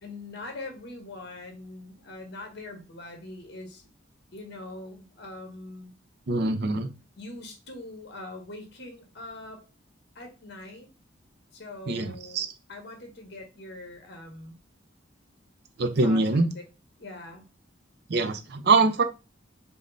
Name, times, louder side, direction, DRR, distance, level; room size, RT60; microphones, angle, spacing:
voice 1, 0.0-3.9 4.3-5.9 7.2-9.7 10.1-10.9 11.5-14.6 16.0-16.6 17.0-17.5, left 2 dB, 55° left, 3 dB, 1.3 m, -42 dB
voice 2, 6.3-6.9 11.9-12.5 15.8-16.5 18.1-19.0, right 3 dB, 55° right, 9 dB, 0.6 m, -23 dB
5.2 x 2.1 x 4.0 m, 0.29 s
head